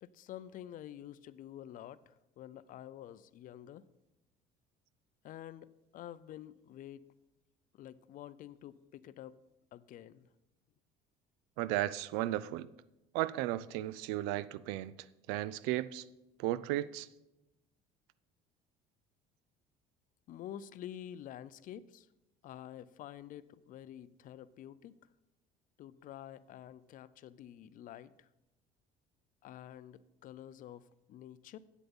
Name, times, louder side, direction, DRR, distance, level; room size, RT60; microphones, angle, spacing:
voice 1, 0.0-3.8 5.2-5.7 5.9-7.0 7.7-9.4 9.7-10.3 20.3-22.1 22.4-25.0 25.8-28.3 29.4-31.6, left 11 dB, 55° left, 0.5 m, -49 dB
voice 2, 11.6-12.7 13.1-14.9 15.3-16.1 16.4-17.1, right 15 dB, 85° right, 0.4 m, -34 dB
8.3 x 7.8 x 5.4 m
cardioid pair, 100°, 17 cm